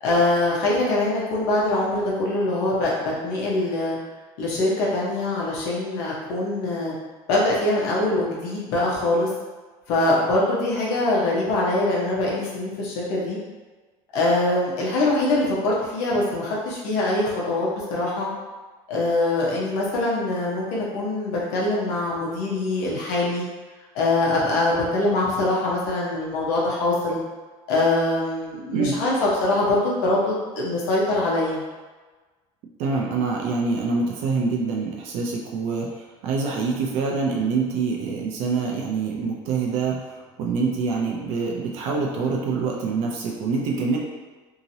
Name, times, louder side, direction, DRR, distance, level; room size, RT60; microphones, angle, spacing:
voice 1, 0.0-4.0 4.4-6.9 7.3-9.3 9.9-13.4 14.1-18.3 18.9-23.4 23.9-27.2 27.7-31.6, left 2 dB, 90° left, -4 dB, 0.9 m, -23 dB
voice 2, 32.8-44.0, right 4 dB, 55° right, -2 dB, 0.5 m, -25 dB
2.8 x 2.8 x 2.7 m, 1.3 s
cardioid pair, 175°, 13 cm